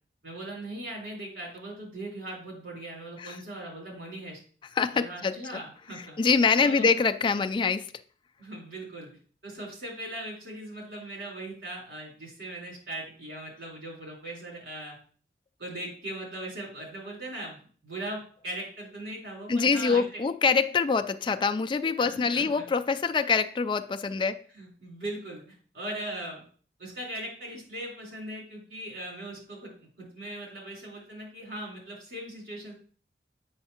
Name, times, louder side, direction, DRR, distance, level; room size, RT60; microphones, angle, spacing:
voice 1, 0.2-4.4 4.9-6.2 6.6-6.9 8.4-9.1 9.4-15.0 15.6-20.2 22.0-22.5 24.5-26.4 26.8-32.7, right 1 dB, 70° right, 4.0 m, -39 dB
voice 2, 4.8-5.6 5.9-7.9 19.5-24.4, left 5 dB, 25° left, 0.3 m, -25 dB
7.9 x 6.4 x 2.9 m
head